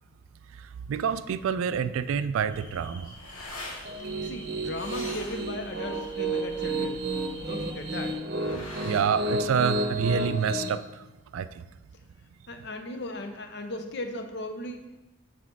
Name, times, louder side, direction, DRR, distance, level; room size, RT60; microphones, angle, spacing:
voice 1, 0.9-3.1 8.8-10.8 11.3-11.5, right 7 dB, 75° right, 13 dB, 0.3 m, -27 dB
sound 1, 2.5-8.2, equal, 10° left, 1.3 m, -48 dB
sound 2, 2.7-10.3, left 2 dB, 80° left, 1.2 m, -45 dB
Piano, 3.8-10.7, right 1 dB, 50° right, 0.7 m, -31 dB
voice 2, 4.0-7.0 7.4-8.1 12.5-15.0, left 2 dB, 50° left, 6 dB, 0.6 m, -37 dB
6.3 x 4.2 x 4.6 m, 1.0 s
head